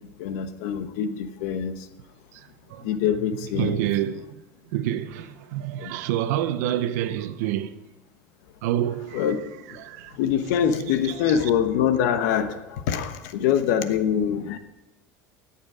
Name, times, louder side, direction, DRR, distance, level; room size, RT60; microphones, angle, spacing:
voice 1, 0.2-1.8 2.8-3.8 5.8-5.9 9.1-9.4 10.2-14.6, left 8 dB, 80° left, 1.1 m, -24 dB
voice 2, 2.3-2.9 3.5-4.4 4.7-7.7 8.6-9.3 9.8-10.2, right 12 dB, 85° right, 0.8 m, -28 dB
18.5 x 7.2 x 5.0 m
supercardioid pair, 120°, 9 cm